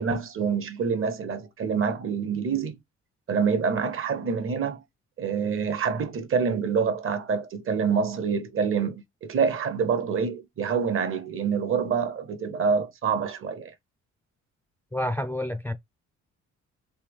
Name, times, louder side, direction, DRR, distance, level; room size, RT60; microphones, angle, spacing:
voice 1, 0.0-2.8 3.3-4.8 5.2-13.7, right 6 dB, 45° right, 0.7 m, -26 dB
voice 2, 14.9-15.7, left 1 dB, 5° left, 0.4 m, -29 dB
3.4 x 2.8 x 3.4 m
cardioid pair, 90°, 30 cm